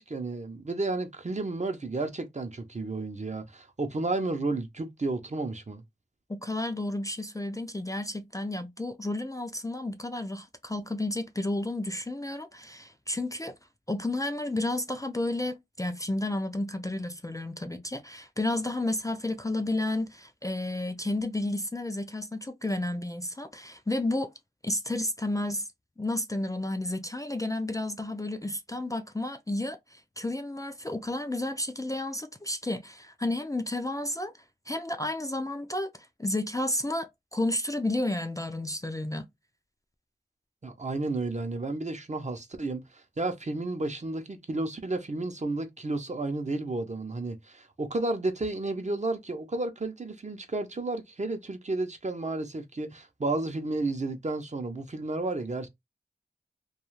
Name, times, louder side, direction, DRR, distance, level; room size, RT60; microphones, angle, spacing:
voice 1, 0.0-5.8 40.6-55.7, right 2 dB, 40° right, 0.6 m, -32 dB
voice 2, 6.3-13.6 13.9-24.3 24.6-25.7 26.0-34.3 34.7-35.9 36.2-39.3, left 1 dB, 20° left, 0.4 m, -31 dB
2.3 x 2.3 x 3.1 m
wide cardioid pair, 50°, 18 cm